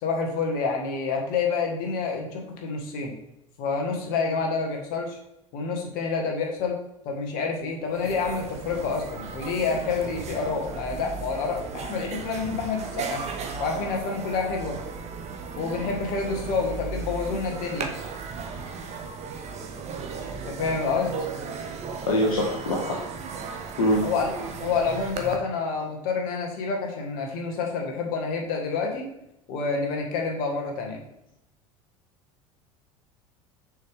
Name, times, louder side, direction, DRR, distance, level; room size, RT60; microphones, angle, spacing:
voice 1, 0.0-3.1 3.6-5.2 5.5-6.8 7.0-13.2 13.6-14.8 15.6-17.9 20.5-21.1 24.0-24.3 24.6-29.1 29.5-31.0, left 4 dB, 55° left, 1 dB, 1.6 m, -28 dB
sound 1, 7.6-7.7 7.9-25.4, right 5 dB, 35° right, 1.0 m, -35 dB
voice 2, 22.1-22.9 23.8-24.1, left 1 dB, 75° left, -2 dB, 1.2 m, -23 dB
6.4 x 5.1 x 3.6 m, 0.85 s
figure-of-eight pair, 70°, 18 cm